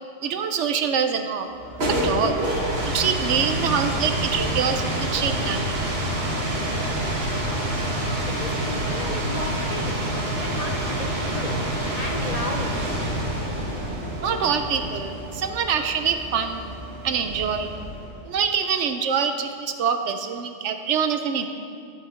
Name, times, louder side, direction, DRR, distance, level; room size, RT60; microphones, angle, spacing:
voice 1, 0.2-1.5 1.9-2.4 2.8-5.7 14.2-16.7 17.0-17.8 18.2-21.5, right 7 dB, 70° right, 7 dB, 1.0 m, -25 dB
sound 1, 1.5-18.2, right 1 dB, 55° right, 1.6 m, -27 dB
voice 2, 8.4-10.0 10.4-11.6 11.9-12.8, left 2 dB, 40° left, 2 dB, 0.6 m, -34 dB
10.5 x 7.9 x 5.0 m, 2.3 s
omnidirectional pair, 1.3 m